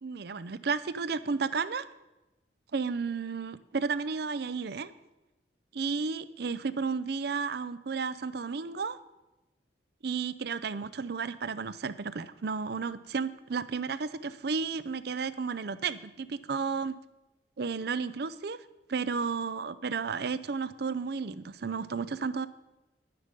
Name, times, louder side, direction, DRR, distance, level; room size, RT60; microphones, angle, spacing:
voice 1, 0.0-1.8 2.7-4.9 5.7-9.0 10.0-16.9 17.6-18.6 18.9-22.5, right 5 dB, 60° right, 15 dB, 0.6 m, -33 dB
11.5 x 9.8 x 5.3 m, 1.0 s
head